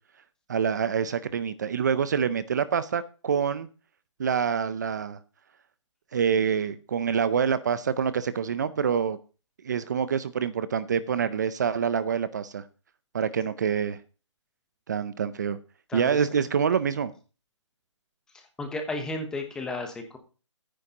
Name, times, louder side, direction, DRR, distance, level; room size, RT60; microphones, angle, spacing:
voice 1, 0.5-3.7 4.2-5.2 6.1-9.2 9.6-12.6 13.1-14.0 14.9-15.6 15.9-17.1, right 7 dB, 35° right, 14 dB, 0.6 m, -26 dB
voice 2, 18.6-20.2, left 2 dB, 5° left, 5 dB, 0.9 m, -33 dB
13.5 x 9.9 x 2.9 m, 0.34 s
hypercardioid pair, 165°, 16 cm